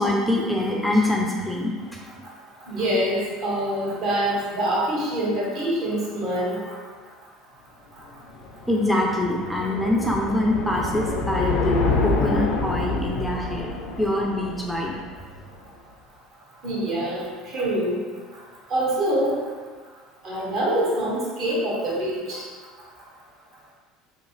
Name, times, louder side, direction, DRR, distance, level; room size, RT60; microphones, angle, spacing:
voice 1, 0.0-2.2 8.7-15.0, left 1 dB, 5° left, -2 dB, 0.4 m, -25 dB
voice 2, 2.7-6.6 16.6-18.0 18.7-19.4 20.2-22.4, right 1 dB, 55° right, -5 dB, 1.0 m, -25 dB
sound 1, 8.1-15.4, left 3 dB, 65° left, 0.4 m, -27 dB
2.8 x 2.3 x 3.0 m, 1.5 s
hypercardioid pair, 70°, 0 cm